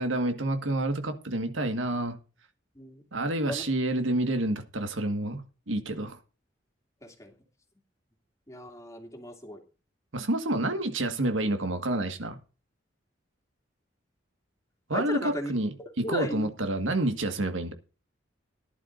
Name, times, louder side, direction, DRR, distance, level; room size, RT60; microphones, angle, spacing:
voice 1, 0.0-2.2 3.1-6.2 10.1-12.4 14.9-17.7, right 1 dB, 90° right, 1.7 m, -29 dB
voice 2, 2.7-3.0 3.4-3.6 4.0-4.1 7.0-7.4 8.5-9.6 14.9-15.5 15.8-16.5, equal, 15° left, 2.7 m, -36 dB
17.5 x 11.0 x 2.6 m
head